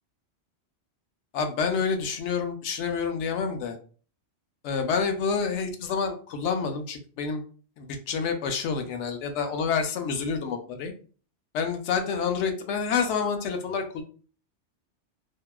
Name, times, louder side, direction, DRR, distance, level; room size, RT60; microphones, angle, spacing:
voice 1, 1.3-3.8 4.6-7.4 7.8-10.9 11.5-14.0, left 5 dB, 80° left, 5 dB, 0.9 m, -28 dB
2.7 x 2.2 x 2.2 m, 0.40 s
omnidirectional pair, 1.2 m